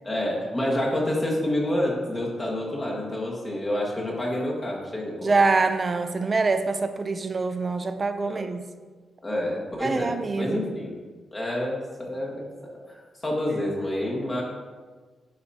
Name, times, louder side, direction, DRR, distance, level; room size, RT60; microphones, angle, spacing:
voice 1, 0.0-5.3 8.3-8.4 9.2-11.0 11.3-12.5 12.7-14.4, left 1 dB, 20° left, -3 dB, 1.7 m, -28 dB
voice 2, 5.2-8.7 9.8-10.6, right 3 dB, 30° right, 9 dB, 0.4 m, -25 dB
10.5 x 5.0 x 2.8 m, 1.4 s
wide cardioid pair, 150°, 0 cm